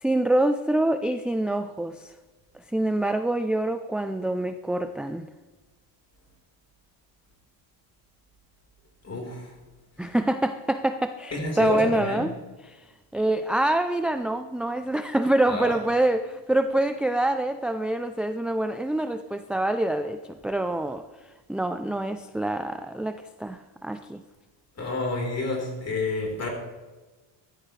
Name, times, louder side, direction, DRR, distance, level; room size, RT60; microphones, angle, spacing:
voice 1, 0.0-2.1 2.7-5.3 10.0-12.3 12.7-12.8 13.1-21.0 21.5-24.2, right 1 dB, ahead, 8 dB, 0.3 m, -26 dB
voice 2, 9.0-9.6 10.0-10.1 11.3-12.3 15.5-15.8 24.8-26.5, left 2 dB, 30° left, 0 dB, 4.1 m, -29 dB
15.5 x 12.5 x 3.2 m, 1.2 s
cardioid pair, 120°, 47 cm